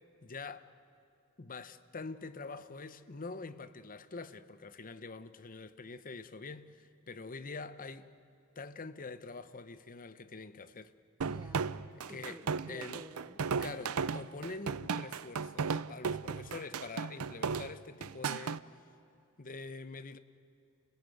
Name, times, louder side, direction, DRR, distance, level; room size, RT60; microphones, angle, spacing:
voice 1, 0.2-0.7 1.4-8.1 8.6-10.9 11.9-13.1 13.6-18.6 19.4-20.2, left 3 dB, 40° left, 0.9 m, -45 dB
voice 2, 11.2-13.4, right 1 dB, 15° right, 0.8 m, -52 dB
sound 1, 11.2-18.6, right 5 dB, 80° right, 0.6 m, -35 dB
29.0 x 16.5 x 9.2 m
head